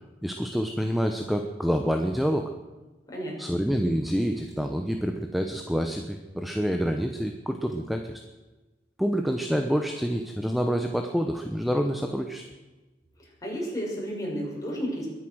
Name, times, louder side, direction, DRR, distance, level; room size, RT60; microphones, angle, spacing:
voice 1, 0.2-2.5 3.4-8.1 9.0-12.4, equal, ahead, 5 dB, 0.9 m, -27 dB
voice 2, 13.2-15.1, equal, 20° left, -3 dB, 6.2 m, -32 dB
21.5 x 9.9 x 6.3 m, 1.2 s
head